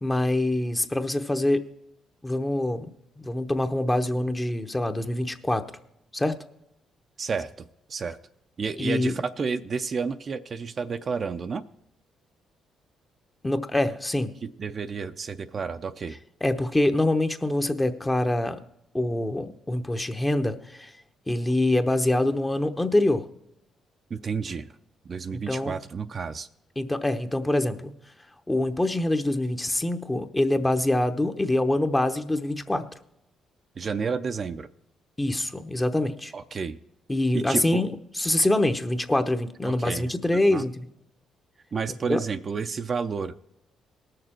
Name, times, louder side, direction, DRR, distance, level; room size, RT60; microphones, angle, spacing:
voice 1, 0.0-1.6 2.2-2.9 3.2-5.6 6.1-6.3 8.8-9.1 13.4-14.3 16.4-18.6 18.9-20.9 21.3-23.3 25.5-25.7 26.8-27.9 28.5-32.9 35.2-36.3 37.1-37.9 38.2-40.7 42.1-42.2, left 1 dB, 15° left, 8 dB, 0.9 m, -25 dB
voice 2, 7.2-7.5 7.9-8.2 8.6-11.6 14.4-16.2 24.1-24.7 25.0-26.5 33.8-34.7 36.3-36.8 37.3-37.8 39.6-40.6 41.7-43.3, right 5 dB, 45° right, 9 dB, 0.5 m, -31 dB
19.0 x 6.7 x 4.4 m, 0.80 s
cardioid pair, 90°, 0 cm